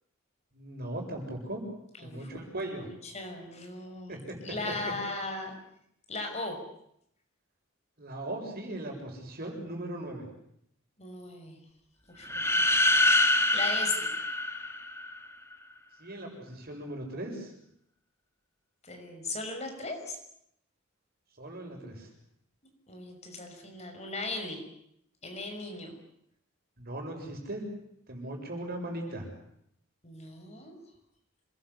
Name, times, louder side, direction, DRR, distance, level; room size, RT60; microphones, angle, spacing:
voice 1, 0.5-1.6 2.0-2.9 4.1-4.4 8.0-10.3 16.0-17.5 21.4-22.1 26.8-27.6 28.1-29.3, right 1 dB, 50° right, 2 dB, 7.5 m, -38 dB
voice 2, 2.0-4.2 4.4-5.5 6.1-6.6 11.0-11.6 12.1-12.9 13.5-14.1 18.8-20.2 22.9-24.6 25.2-25.9 30.0-30.8, left 3 dB, 35° left, 4 dB, 6.1 m, -38 dB
sound 1, 12.2-15.2, left 2 dB, 15° left, 2.2 m, -25 dB
27.5 x 21.0 x 8.3 m, 0.73 s
head